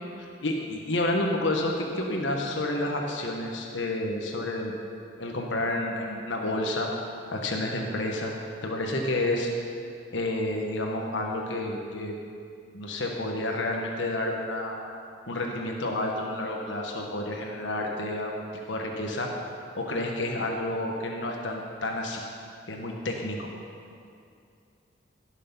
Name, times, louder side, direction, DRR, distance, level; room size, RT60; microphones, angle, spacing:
voice 1, 0.4-4.7 5.2-6.9 7.3-8.3 8.6-9.5 10.1-12.1 12.7-14.8 15.3-19.3 19.8-22.3 22.7-23.5, left 1 dB, 90° left, 1 dB, 1.3 m, -30 dB
17.0 x 6.5 x 5.4 m, 2.4 s
head